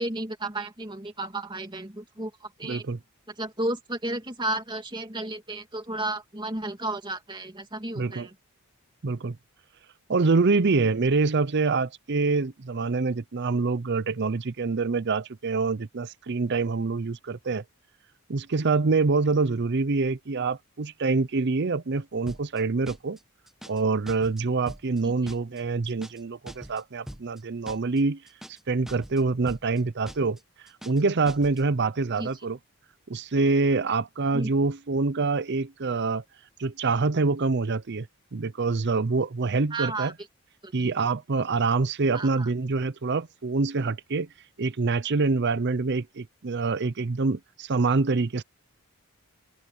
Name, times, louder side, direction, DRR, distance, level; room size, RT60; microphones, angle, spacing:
voice 1, 0.0-2.8 3.4-8.3 25.0-25.3 32.2-32.3 34.3-34.5 39.7-40.1 40.6-40.9 42.1-42.5, right 2 dB, 20° right, 2.6 m, -33 dB
voice 2, 2.6-3.0 8.0-8.3 9.0-9.4 10.1-17.6 18.3-23.2 23.7-28.2 28.7-30.4 30.8-32.6 33.1-36.2 36.6-38.1 38.3-40.1 40.7-44.3 44.6-48.4, right 3 dB, 50° right, 0.6 m, -25 dB
sound 1, 22.3-22.6 22.9-23.2 23.5-23.8 24.1-24.4 24.7-25.0 25.3-25.6 25.9-26.2 26.5-26.8 27.1-27.4 27.7-28.0 28.3-28.6 28.9-29.2 29.5-29.8 30.1-30.4 30.7-31.0 31.3-31.6, equal, ahead, 1.2 m, -42 dB
open air
head